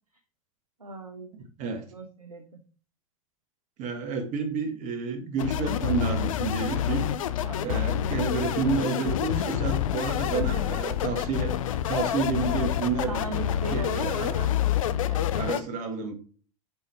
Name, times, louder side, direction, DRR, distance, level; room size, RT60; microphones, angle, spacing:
voice 1, 0.8-1.3 1.9-2.6 7.4-7.8 10.3-10.7 13.1-14.5 15.0-15.6, right 3 dB, 90° right, 5 dB, 0.7 m, -39 dB
voice 2, 1.3-1.8 3.8-7.1 7.6-11.6 11.9-13.2 13.7-14.3 15.3-16.1, right 4 dB, 40° right, 6 dB, 1.5 m, -30 dB
sound 1, 5.4-15.6, left 10 dB, 65° left, 0.5 m, -28 dB
5.5 x 4.3 x 4.6 m, 0.40 s
figure-of-eight pair, 85°, 18 cm